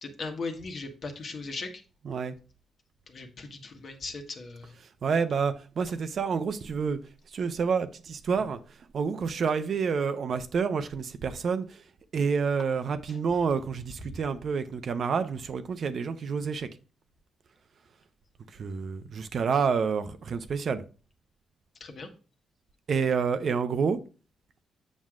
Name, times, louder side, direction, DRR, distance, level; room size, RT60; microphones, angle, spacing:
voice 1, 0.0-1.7 3.1-4.7 21.8-22.1, left 3 dB, 55° left, 1.2 m, -38 dB
voice 2, 5.0-7.0 7.3-8.6 8.9-11.8 12.1-16.7 18.5-20.8 22.9-24.0, right 5 dB, 60° right, 0.6 m, -28 dB
7.4 x 6.1 x 2.4 m
cardioid pair, 75°, 0 cm